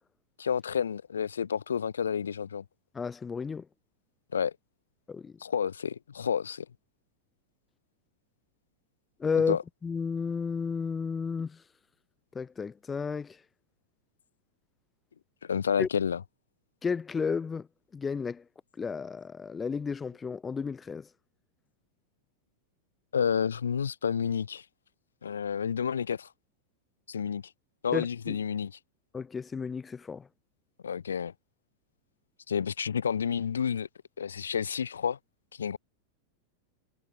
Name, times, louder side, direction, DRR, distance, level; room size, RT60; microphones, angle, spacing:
voice 1, 0.4-2.6 4.3-4.5 5.4-6.6 9.5-9.6 15.4-16.2 23.1-24.6 25.2-26.3 27.1-27.4 27.8-28.7 30.8-31.3 32.5-33.9 34.2-35.2 35.6-35.8, left 7 dB, 70° left, 1.4 m, -30 dB
voice 2, 2.9-3.6 5.1-5.3 9.2-9.6 9.8-11.6 12.3-13.4 15.8-15.9 16.8-17.7 17.9-18.4 18.8-21.1 27.9-28.4 29.1-30.3, left 5 dB, 15° left, 3.1 m, -32 dB
figure-of-eight pair, 90°, 0 cm